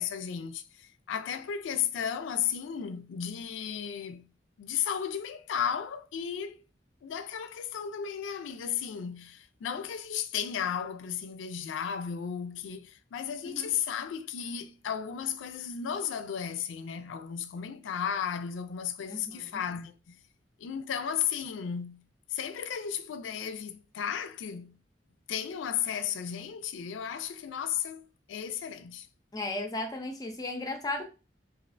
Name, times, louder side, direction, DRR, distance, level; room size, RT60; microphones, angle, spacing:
voice 1, 0.0-4.3 4.6-6.6 7.0-20.2 20.6-22.0 22.3-24.8 25.3-29.1, left 8 dB, 90° left, 0.3 m, -34 dB
voice 2, 19.0-19.6 29.3-31.1, left 2 dB, 20° left, 0.4 m, -35 dB
3.2 x 2.4 x 2.5 m
head